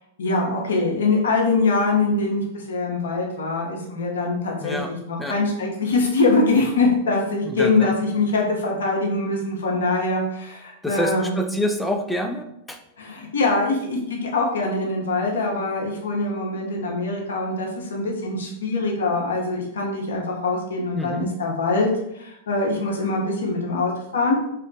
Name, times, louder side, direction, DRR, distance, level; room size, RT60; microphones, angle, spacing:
voice 1, 0.2-11.3 13.0-21.9 22.1-24.4, left 3 dB, 75° left, -1 dB, 0.5 m, -23 dB
voice 2, 4.6-4.9 5.2-5.4 7.5-7.9 10.8-12.8 20.9-21.3, equal, 5° left, 5 dB, 0.3 m, -27 dB
2.4 x 2.1 x 2.5 m, 0.80 s
hypercardioid pair, 100°, 0 cm